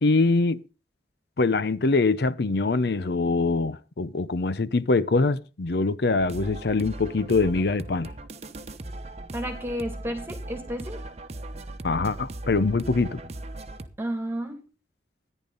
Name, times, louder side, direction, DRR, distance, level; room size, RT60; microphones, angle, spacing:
voice 1, 0.0-0.6 1.4-8.1 11.8-13.2, left 3 dB, 60° left, 0.6 m, -23 dB
sound 1, 6.2-13.9, right 1 dB, 35° right, 1.0 m, -38 dB
voice 2, 9.3-11.0 14.0-14.6, equal, 15° right, 2.1 m, -31 dB
14.0 x 10.5 x 3.9 m
head